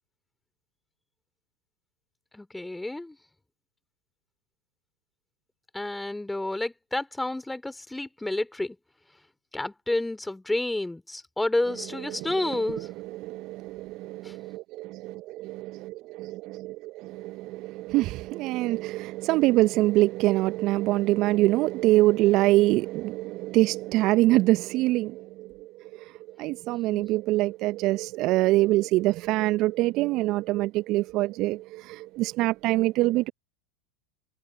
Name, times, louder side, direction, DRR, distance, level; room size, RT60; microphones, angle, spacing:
voice 1, 2.3-3.2 5.7-8.8 9.5-12.9 14.2-14.4 26.9-27.1, left 2 dB, 5° left, 3.1 m, -30 dB
voice 2, 12.1-25.8 26.4-33.3, right 18 dB, 50° right, 1.3 m, -25 dB
figure-of-eight pair, 85°, 0 cm